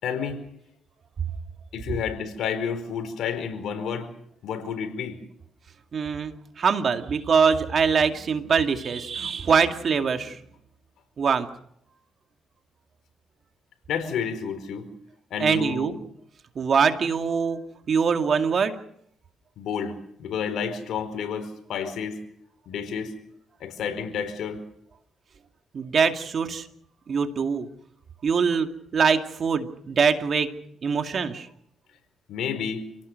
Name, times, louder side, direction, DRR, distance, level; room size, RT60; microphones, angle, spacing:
voice 1, 0.0-0.4 1.7-4.1 4.4-5.2 13.9-14.8 15.3-15.9 19.6-19.9 20.2-22.2 22.7-23.1 23.6-24.6 32.3-32.8, left 7 dB, 75° left, 8 dB, 4.6 m, -30 dB
voice 2, 5.9-10.4 11.2-11.5 15.4-15.9 16.6-17.6 17.9-18.8 25.7-26.7 27.1-27.7 28.2-31.5, right 6 dB, 50° right, 7 dB, 2.3 m, -23 dB
28.5 x 17.5 x 6.6 m, 0.71 s
cardioid pair, 90°, 0 cm